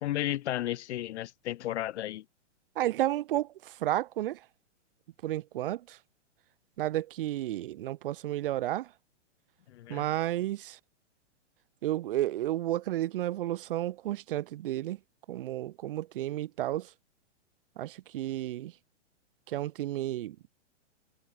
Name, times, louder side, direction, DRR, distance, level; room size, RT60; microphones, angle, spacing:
voice 1, 0.0-2.2 9.7-10.1, left 14 dB, 65° left, 0.5 m, -33 dB
voice 2, 2.8-4.4 5.2-6.0 6.8-8.9 9.9-10.8 11.8-15.0 15.3-16.9 17.8-18.7 19.5-20.4, right 14 dB, 45° right, 0.9 m, -32 dB
hypercardioid pair, 155°, 37 cm